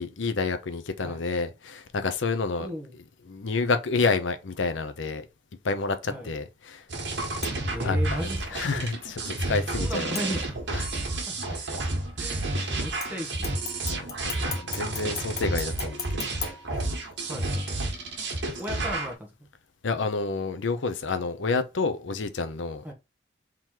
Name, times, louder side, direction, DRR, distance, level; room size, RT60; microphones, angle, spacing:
voice 1, 0.0-2.7 3.2-5.3 5.6-6.8 7.8-10.1 10.7-10.9 11.6-11.7 12.5-12.8 13.8-16.3 19.8-22.9, left 4 dB, 85° left, 0.6 m, -29 dB
voice 2, 2.6-2.9 6.1-6.3 7.7-8.6 9.8-10.6 11.3-11.8 12.1-13.6 15.6-15.7 17.3-17.7 18.6-19.3 22.8-22.9, equal, 10° right, 1.0 m, -36 dB
sound 1, 6.9-19.1, right 2 dB, 70° right, 1.4 m, -30 dB
sound 2, 7.4-7.9 10.1-10.9 13.0-17.4 17.8-17.9, left 6 dB, 20° left, 0.4 m, -39 dB
3.7 x 3.0 x 4.5 m
head